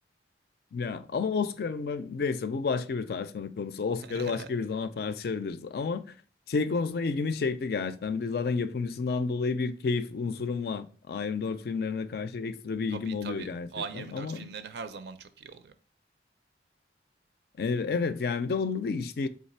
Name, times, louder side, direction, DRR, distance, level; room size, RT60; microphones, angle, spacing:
voice 1, 0.7-6.0 6.5-13.7 13.9-14.5 17.6-19.3, left 4 dB, 60° left, 0.4 m, -30 dB
voice 2, 4.0-4.5 12.9-15.7, right 5 dB, 70° right, 0.5 m, -41 dB
3.9 x 3.2 x 4.2 m
head